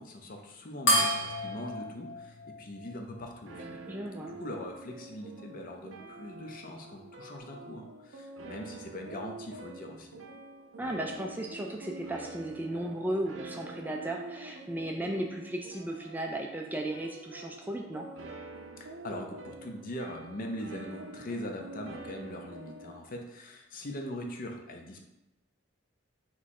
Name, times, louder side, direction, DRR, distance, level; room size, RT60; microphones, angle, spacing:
voice 1, 0.0-3.8 4.3-10.2 18.8-25.0, left 1 dB, 45° left, 3 dB, 0.6 m, -41 dB
sound 1, 0.9-3.7, equal, 80° left, 1.1 m, -31 dB
sound 2, 3.5-23.0, right 2 dB, 75° right, 0.5 m, -46 dB
voice 2, 3.9-4.3 10.8-18.1, right 1 dB, 10° right, 1 dB, 0.3 m, -35 dB
3.5 x 3.1 x 4.2 m, 0.93 s
head